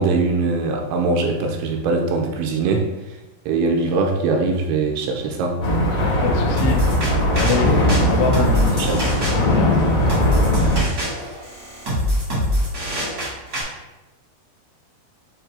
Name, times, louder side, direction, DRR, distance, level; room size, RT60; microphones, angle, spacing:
voice 1, 0.0-2.9 3.5-5.6 8.4-8.5 8.8-9.0, right 3 dB, 85° right, 2 dB, 2.9 m, -21 dB
sound 1, 5.6-10.8, left 1 dB, 60° left, 1.1 m, -19 dB
voice 2, 6.2-7.0 7.3-8.9 9.3-9.7, left 4 dB, 80° left, 3 dB, 2.9 m, -24 dB
sound 2, 6.6-13.6, equal, 65° right, 0.9 m, -24 dB
7.4 x 2.7 x 4.7 m, 1.0 s
omnidirectional pair, 5.4 m